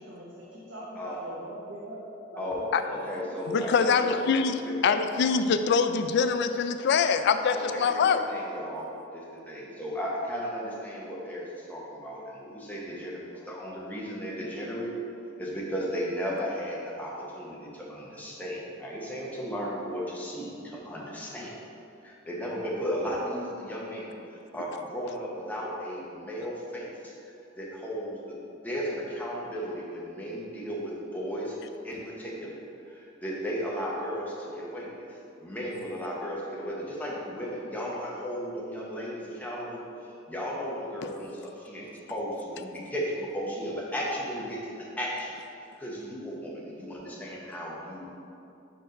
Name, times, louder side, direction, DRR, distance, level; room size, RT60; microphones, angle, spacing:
voice 1, 0.0-2.0 2.3-3.6, equal, 65° right, -7 dB, 1.0 m, -42 dB
voice 2, 2.9-4.2 4.6-5.0 7.5-14.9 15.4-21.6 22.0-27.1 27.6-28.1 28.6-31.5 31.8-32.6 32.9-39.8 40.3-45.3 45.8-48.1, equal, 10° left, -5 dB, 0.9 m, -35 dB
voice 3, 3.5-4.5 4.8-8.2, left 5 dB, 60° left, 9 dB, 0.3 m, -24 dB
4.6 x 4.5 x 5.1 m, 2.7 s
head